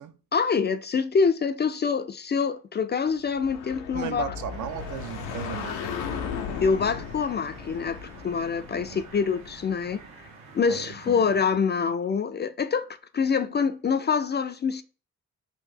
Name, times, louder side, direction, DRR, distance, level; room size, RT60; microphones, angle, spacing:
voice 1, 0.3-4.3 6.6-10.0 10.5-14.8, left 5 dB, 30° left, 0.4 m, -25 dB
sound 1, 3.3-9.9, left 6 dB, 85° left, 0.6 m, -36 dB
voice 2, 3.9-6.1 8.8-9.0 10.7-11.2, right 10 dB, 55° right, 0.5 m, -36 dB
sound 2, 4.5-11.4, right 4 dB, 80° right, 1.0 m, -48 dB
2.9 x 2.6 x 3.6 m
hypercardioid pair, 45°, 36 cm